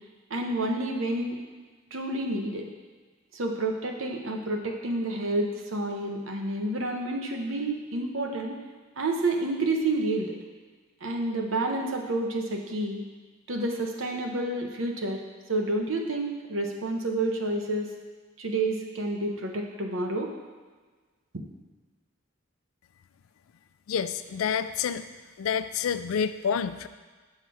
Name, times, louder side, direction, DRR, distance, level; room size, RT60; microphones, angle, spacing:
voice 1, 0.3-1.4 1.9-2.7 3.3-8.6 9.0-10.3 11.0-13.0 13.5-15.2 15.5-17.9 18.4-20.3, right 2 dB, 70° right, 2 dB, 1.0 m, -29 dB
voice 2, 23.9-25.0 25.4-26.9, left 7 dB, 90° left, 12 dB, 0.4 m, -28 dB
6.6 x 5.7 x 4.8 m, 1.4 s
head